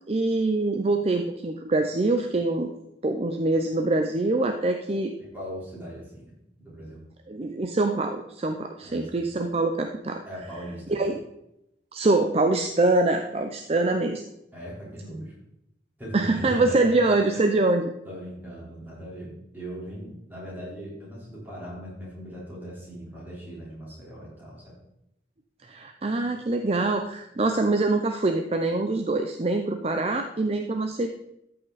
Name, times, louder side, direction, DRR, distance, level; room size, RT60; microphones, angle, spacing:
voice 1, 0.1-2.7 3.0-5.1 7.3-10.2 10.9-11.2 11.9-14.2 16.1-17.9 25.6-31.1, right 2 dB, 35° right, 5 dB, 0.5 m, -24 dB
voice 2, 5.2-7.0 8.8-9.3 10.3-11.1 14.5-15.4 16.0-17.0 17.3-17.5 18.0-24.7, equal, 10° right, -6 dB, 3.9 m, -39 dB
13.0 x 5.7 x 4.1 m, 0.82 s
head